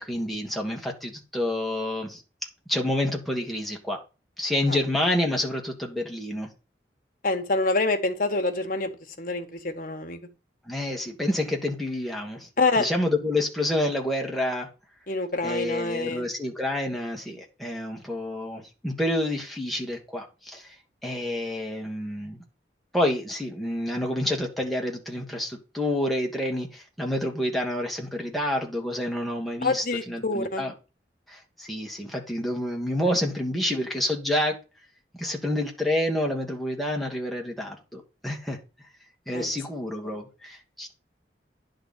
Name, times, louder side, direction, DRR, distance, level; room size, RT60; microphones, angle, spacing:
voice 1, 0.0-2.2 2.7-4.0 4.4-6.5 10.6-12.5 12.8-14.7 15.4-20.7 21.0-22.4 22.9-30.7 31.3-34.6 35.1-38.6 39.3-40.9, left 1 dB, ahead, 1.6 m, -28 dB
voice 2, 7.2-8.9 9.2-10.3 12.6-12.9 15.1-16.2 29.6-30.6 39.3-39.5 40.0-40.2, left 3 dB, 50° left, 1.3 m, -26 dB
10.5 x 3.9 x 7.2 m
head